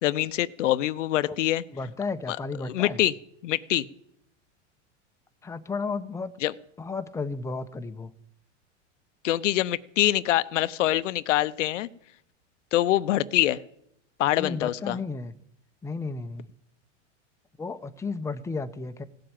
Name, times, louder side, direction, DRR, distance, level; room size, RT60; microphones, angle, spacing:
voice 1, 0.0-1.6 2.3-2.4 2.7-3.1 3.4-3.9 6.4-6.5 9.2-11.9 12.7-13.6 14.2-15.0, left 14 dB, 80° left, 16 dB, 0.8 m, -24 dB
voice 2, 1.7-3.0 5.4-6.3 6.8-8.1 14.4-15.3 15.8-16.5 17.6-19.0, left 4 dB, 10° left, 9 dB, 0.8 m, -33 dB
17.0 x 7.7 x 8.9 m, 0.74 s
hypercardioid pair, 115°, 37 cm